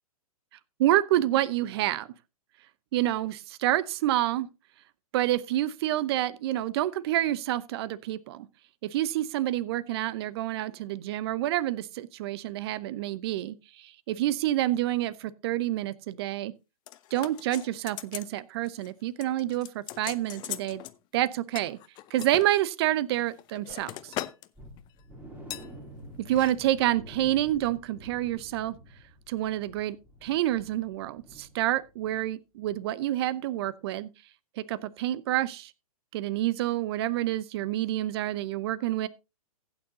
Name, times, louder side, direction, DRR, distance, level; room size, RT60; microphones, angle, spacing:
voice 1, 0.8-2.1 2.9-4.5 5.1-8.5 8.8-16.5 17.1-20.8 21.1-21.8 22.1-24.1 26.3-28.7 29.3-30.0 30.2-34.1 34.6-35.7 36.1-39.1, right 14 dB, 40° right, 0.8 m, -28 dB
sound 1, 16.9-18.3 18.6-18.9 19.2-21.0 21.6-22.5 23.1-24.5 24.8-25.0 25.5-25.7 26.3-26.5 26.8-26.9, left 16 dB, 25° left, 0.6 m, -40 dB
sound 2, 24.6-32.3 32.6-32.8 33.2-33.3, equal, 10° right, 3.2 m, -49 dB
15.5 x 9.0 x 2.8 m
hypercardioid pair, 125°, 20 cm